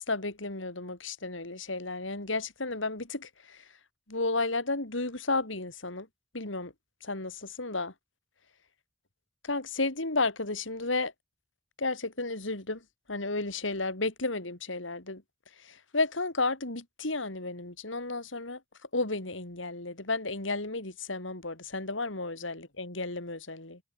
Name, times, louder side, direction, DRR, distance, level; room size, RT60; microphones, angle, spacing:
voice 1, 0.0-3.6 4.1-6.1 6.3-6.7 7.0-7.9 9.4-11.1 11.8-12.8 13.1-15.2 15.6-18.6 18.9-23.8, left 3 dB, 80° left, 3.8 m, -32 dB
head